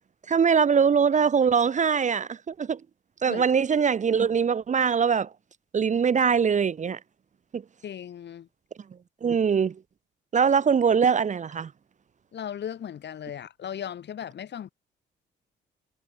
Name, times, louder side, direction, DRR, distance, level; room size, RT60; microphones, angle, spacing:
voice 1, 0.3-2.8 3.2-5.3 5.7-7.0 7.5-7.6 9.2-9.7 10.3-11.7, right 6 dB, 40° right, 0.8 m, -22 dB
voice 2, 7.8-8.5 12.3-14.7, left 9 dB, 60° left, 4.8 m, -37 dB
cardioid pair, 90°, 20 cm